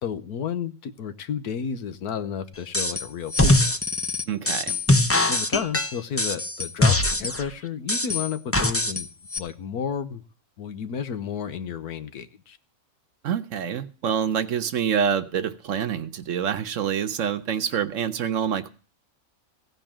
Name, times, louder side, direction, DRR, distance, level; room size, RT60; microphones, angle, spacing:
voice 1, 0.0-3.7 5.3-9.1 9.4-10.2 10.6-12.6, left 7 dB, 85° left, 1.5 m, -32 dB
sound 1, 2.7-3.0 3.3-7.5 7.9-9.0 9.3-9.4, left 2 dB, 20° left, 0.4 m, -22 dB
voice 2, 4.3-4.8 13.2-18.7, right 7 dB, 60° right, 1.1 m, -26 dB
15.5 x 5.5 x 8.8 m
omnidirectional pair, 1.6 m